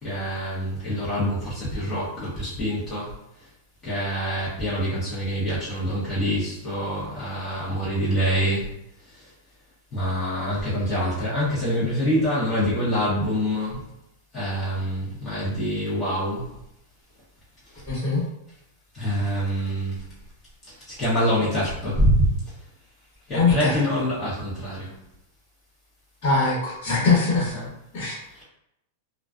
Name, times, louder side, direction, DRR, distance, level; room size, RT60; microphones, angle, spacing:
voice 1, 0.0-3.1 3.8-8.7 9.9-13.8 14.3-16.5 18.9-20.0 20.7-22.3 23.3-24.9 27.5-27.6 28.4-28.5, equal, 30° left, -9 dB, 0.9 m, -25 dB
voice 2, 17.9-18.2 23.3-23.8 26.2-27.6 27.9-28.2, left 4 dB, 60° left, -7 dB, 1.2 m, -22 dB
2.3 x 2.2 x 2.4 m, 0.83 s
hypercardioid pair, 125°, 0 cm